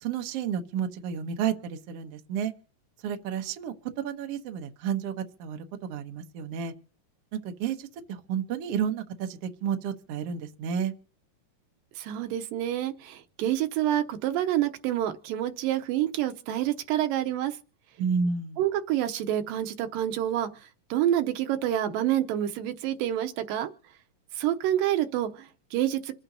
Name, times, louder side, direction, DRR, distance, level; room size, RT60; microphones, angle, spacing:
voice 1, 0.0-2.5 3.0-6.7 7.3-10.9 18.0-18.6, right 7 dB, 65° right, 1.6 m, -31 dB
voice 2, 12.0-17.6 18.6-20.5 20.9-23.7 24.4-26.1, right 12 dB, 90° right, 2.5 m, -28 dB
26.5 x 8.9 x 2.7 m
omnidirectional pair, 3.9 m